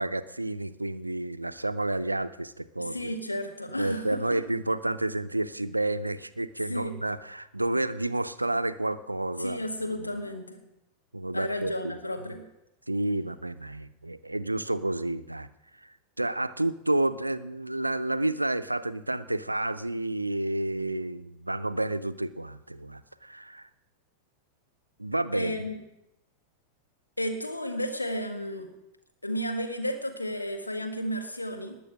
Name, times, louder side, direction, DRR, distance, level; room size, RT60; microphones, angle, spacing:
voice 1, 0.0-3.1 3.8-10.1 11.1-12.0 12.9-15.5 15.8-15.9 16.2-23.7 25.0-25.6, right 1 dB, 85° right, 14 dB, 0.6 m, -30 dB
voice 2, 2.8-4.4 6.7-7.0 9.4-10.6 11.3-12.4 25.3-25.8 27.2-28.7 29.2-31.8, equal, 85° left, 4 dB, 2.0 m, -33 dB
19.5 x 6.9 x 6.4 m, 0.87 s
figure-of-eight pair, 90°, 0 cm